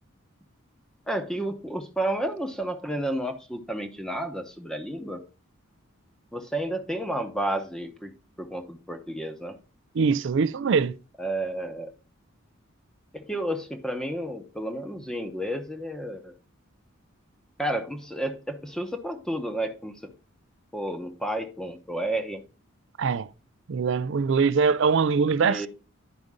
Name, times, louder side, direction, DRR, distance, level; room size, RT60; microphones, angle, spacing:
voice 1, 1.1-5.2 6.3-8.1 8.4-9.6 11.2-11.9 13.1-16.3 17.6-19.9 20.7-22.4 25.4-25.7, right 1 dB, 5° left, 0.9 m, -31 dB
voice 2, 9.9-10.9 23.0-23.3 23.7-25.7, right 5 dB, 60° right, 0.4 m, -23 dB
10.5 x 5.2 x 3.6 m
head